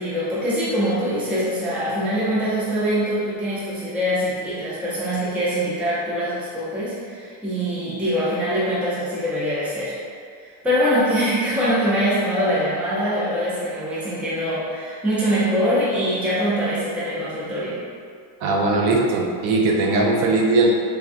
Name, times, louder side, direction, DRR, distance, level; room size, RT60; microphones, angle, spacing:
voice 1, 0.0-10.0 10.6-17.8, equal, 5° right, -9 dB, 0.4 m, -23 dB
voice 2, 18.4-20.7, right 2 dB, 85° right, 0 dB, 0.6 m, -19 dB
3.4 x 2.2 x 2.4 m, 2.2 s
cardioid pair, 140°, 48 cm